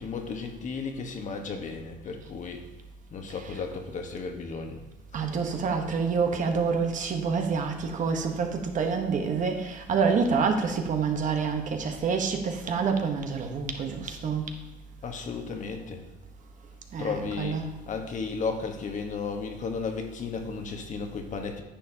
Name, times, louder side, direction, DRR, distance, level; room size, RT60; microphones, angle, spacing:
voice 1, 0.0-2.6 3.1-4.8 15.0-16.0 17.0-21.6, left 5 dB, 45° left, 4 dB, 1.2 m, -34 dB
voice 2, 5.1-14.5 16.9-17.7, right 5 dB, 50° right, 4 dB, 1.1 m, -27 dB
10.0 x 7.2 x 2.8 m, 1.1 s
cardioid pair, 110°, 17 cm